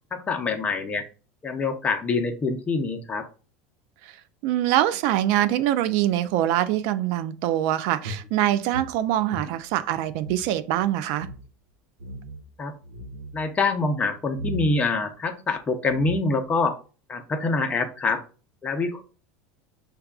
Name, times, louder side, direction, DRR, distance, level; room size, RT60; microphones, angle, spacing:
voice 1, 0.1-1.0 1.4-3.3 12.6-12.7 13.3-16.8 17.1-18.2 18.6-19.0, left 3 dB, 25° left, 0.6 m, -25 dB
voice 2, 4.4-11.3, right 13 dB, 65° right, 0.3 m, -24 dB
sound 1, 8.0-10.5 10.8-10.9 11.1-11.4 12.0-12.5 12.8-13.4 14.3-14.7 15.5-15.6 15.9-16.5, right 1 dB, 85° right, 0.7 m, -36 dB
5.9 x 2.2 x 2.3 m
supercardioid pair, 115°, 6 cm